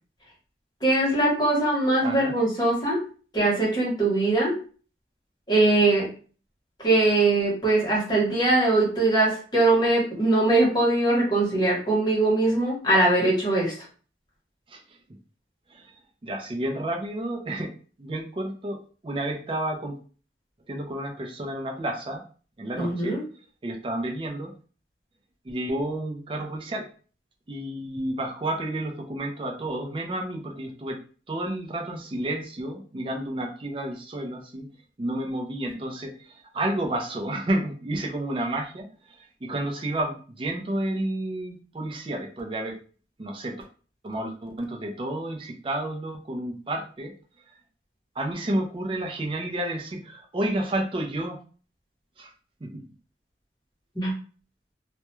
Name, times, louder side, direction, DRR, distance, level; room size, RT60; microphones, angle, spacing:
voice 1, 0.8-3.0 3.3-4.6 5.5-6.1 6.8-13.7 22.8-23.2 53.9-54.1, right 2 dB, 25° left, -4 dB, 1.0 m, -21 dB
voice 2, 2.0-2.4 14.7-14.8 15.7-15.8 16.2-17.7 18.0-20.0 20.7-22.2 22.6-23.2 23.6-24.5 25.4-26.9 27.5-31.0 31.3-34.7 35.0-38.9 39.2-42.8 43.2-43.6 44.0-47.1 48.2-51.4 52.2-52.3 52.6-52.8, right 1 dB, 30° right, 1 dB, 0.4 m, -31 dB
2.3 x 2.1 x 3.0 m, 0.40 s
head